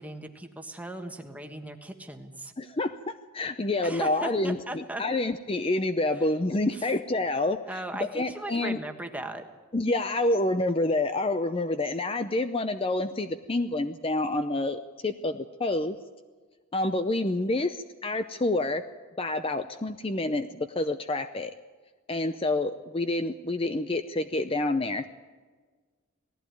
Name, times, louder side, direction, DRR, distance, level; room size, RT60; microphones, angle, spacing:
voice 1, 0.0-2.5 3.8-5.0 6.7-6.9 7.7-9.4, right 1 dB, 5° right, 5 dB, 1.4 m, -38 dB
voice 2, 2.6-7.8 8.1-8.8 9.7-16.0 16.7-18.8 19.2-21.5 22.1-25.1, left 2 dB, 25° left, 9 dB, 0.6 m, -28 dB
19.0 x 15.0 x 9.3 m, 1.4 s
head